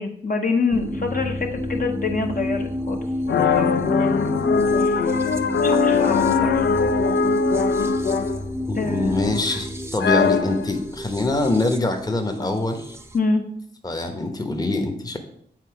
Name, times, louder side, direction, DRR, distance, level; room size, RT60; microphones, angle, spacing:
voice 1, 0.0-3.1 3.5-4.4 4.8-5.1 5.6-6.7 8.8-9.6 13.1-13.4, left 4 dB, 50° left, 3 dB, 1.0 m, -26 dB
sound 1, 0.7-13.2, left 1 dB, 15° right, 0.6 m, -29 dB
sound 2, 3.3-8.5 8.9-9.5 10.0-10.7, left 5 dB, 75° left, 0.4 m, -21 dB
voice 2, 8.7-13.0 13.8-15.2, left 2 dB, 20° left, 5 dB, 0.9 m, -24 dB
7.5 x 4.1 x 4.7 m, 0.68 s
cardioid pair, 70°, 19 cm